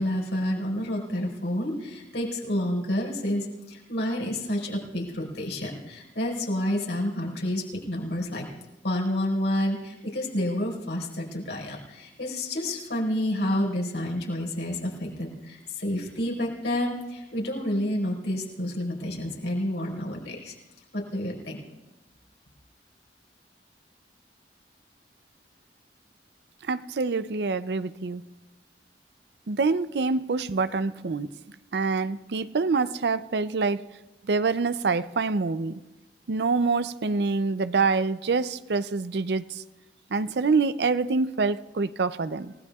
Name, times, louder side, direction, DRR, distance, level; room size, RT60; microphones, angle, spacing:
voice 1, 0.0-8.5 8.8-20.5 20.9-21.6, left 1 dB, 80° left, 4.8 m, -29 dB
voice 2, 26.6-28.3 29.5-31.3 31.7-33.8 34.3-35.8 36.3-39.6 40.1-42.5, right 4 dB, 65° right, 0.5 m, -26 dB
29.0 x 18.0 x 2.4 m
head